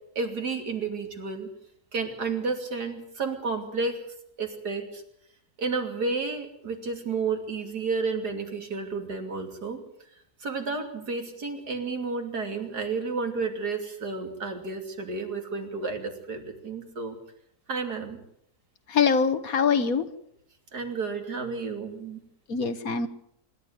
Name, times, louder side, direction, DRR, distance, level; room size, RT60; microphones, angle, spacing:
voice 1, 0.2-1.5 1.9-4.0 4.4-5.0 5.6-9.8 10.4-17.2 17.7-18.2 20.7-22.2, right 4 dB, 85° right, 4 dB, 3.5 m, -31 dB
voice 2, 18.9-20.1 22.5-23.1, left 6 dB, 65° left, 10 dB, 1.8 m, -23 dB
26.0 x 12.5 x 9.5 m, 0.73 s
omnidirectional pair, 1.7 m